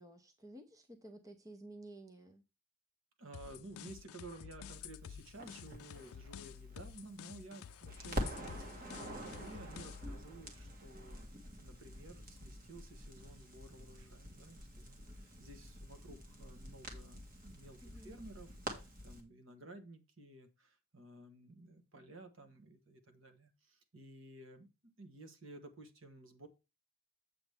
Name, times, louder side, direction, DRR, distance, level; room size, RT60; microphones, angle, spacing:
voice 1, 0.0-2.4 17.8-18.2, right 1 dB, 15° right, 0.7 m, -53 dB
voice 2, 3.2-11.2 11.6-26.5, right 2 dB, 60° right, 1.3 m, -54 dB
sound 1, 3.3-10.2, left 8 dB, 80° left, 0.4 m, -51 dB
Crackle, 5.4-7.5 7.9-19.2, equal, 40° right, 1.7 m, -46 dB
8.0 x 7.0 x 3.5 m
head